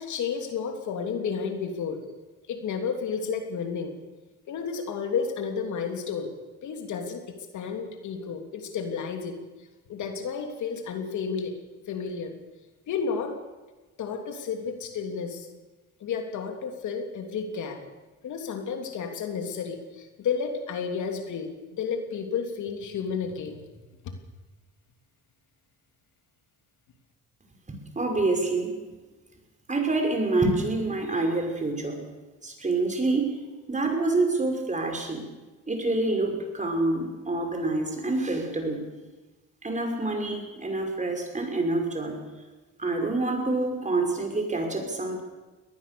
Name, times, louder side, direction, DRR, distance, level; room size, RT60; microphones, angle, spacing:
voice 1, 0.0-2.0 2.5-3.9 4.5-6.3 6.6-9.4 9.9-11.5 11.9-12.3 12.9-13.4 14.0-15.5 16.0-17.8 18.2-23.7 24.0-24.1, left 6 dB, 75° left, 4 dB, 3.1 m, -31 dB
voice 2, 28.0-28.7 29.7-32.0 32.4-33.3 33.7-35.2 35.7-38.8 39.6-42.2 42.8-45.2, right 2 dB, 25° right, 3 dB, 5.6 m, -27 dB
22.0 x 19.0 x 7.0 m, 1.2 s
cardioid pair, 90°, 30 cm